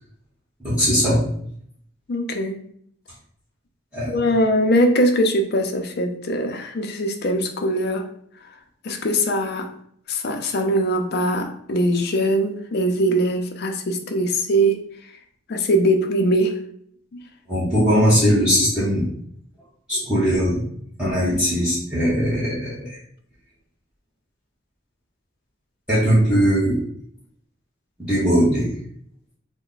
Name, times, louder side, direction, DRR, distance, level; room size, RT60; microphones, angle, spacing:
voice 1, 0.6-1.2 3.9-4.1 17.5-19.0 19.9-20.6 21.0-23.0 25.9-26.8 28.1-28.7, equal, 5° right, -12 dB, 1.1 m, -19 dB
voice 2, 2.1-2.6 4.1-8.0 8.8-9.7 10.1-14.8 15.5-16.5 17.1-17.2, equal, 60° left, 4 dB, 0.5 m, -21 dB
3.3 x 2.2 x 3.8 m, 0.65 s
head